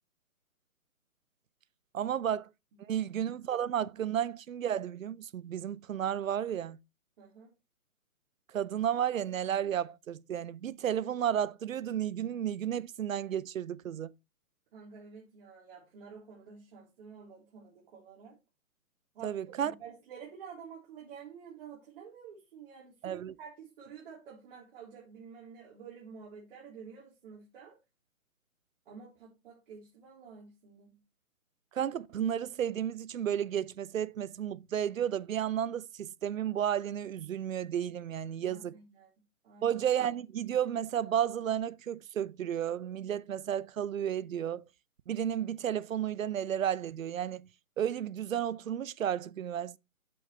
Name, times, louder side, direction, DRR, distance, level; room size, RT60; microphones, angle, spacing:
voice 1, 1.9-2.5 2.8-6.8 8.5-14.1 19.2-19.7 23.0-23.3 31.7-38.8 39.6-44.6 45.1-47.5 47.8-49.8, right 9 dB, 65° right, 0.6 m, -32 dB
voice 2, 7.2-7.5 14.7-18.4 19.1-27.8 28.9-31.0 38.4-39.1 39.4-39.8, right 6 dB, 40° right, 3.6 m, -50 dB
8.5 x 7.0 x 3.2 m
hypercardioid pair, 155°, 44 cm